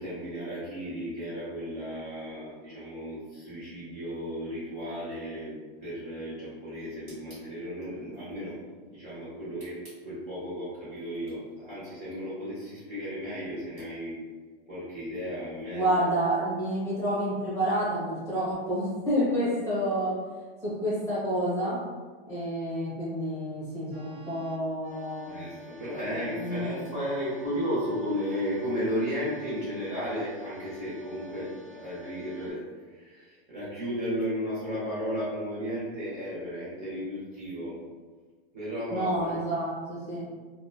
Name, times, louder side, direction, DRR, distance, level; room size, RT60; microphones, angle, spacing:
voice 1, 0.0-5.6 5.8-8.6 8.8-9.8 10.0-14.1 14.7-15.9 25.3-37.8 38.5-39.4, equal, 20° right, -9 dB, 0.6 m, -34 dB
voice 2, 15.7-20.1 20.6-21.8 22.3-25.3 26.1-26.8 38.9-40.2, right 1 dB, 10° left, -10 dB, 0.8 m, -29 dB
sound 1, 23.9-32.5, left 1 dB, 75° right, 0.8 m, -49 dB
2.6 x 2.1 x 2.6 m, 1.4 s
supercardioid pair, 165°, 30 cm